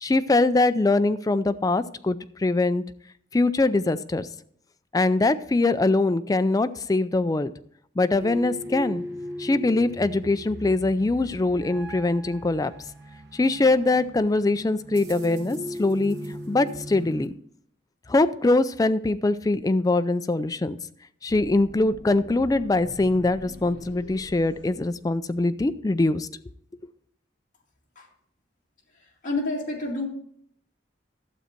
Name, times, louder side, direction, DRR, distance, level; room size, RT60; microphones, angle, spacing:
voice 1, 0.0-2.8 3.3-4.3 4.9-7.5 8.0-9.0 9.4-12.7 13.3-17.3 18.1-20.8 21.2-26.3, left 2 dB, 20° left, 13 dB, 0.3 m, -23 dB
sound 1, 8.2-17.3, equal, 65° right, 1.2 m, -38 dB
sound 2, 21.3-25.6, left 1 dB, 75° left, 1.0 m, -45 dB
voice 2, 28.9-30.1, left 2 dB, 45° left, -2 dB, 2.2 m, -29 dB
12.0 x 8.0 x 4.4 m, 0.65 s
head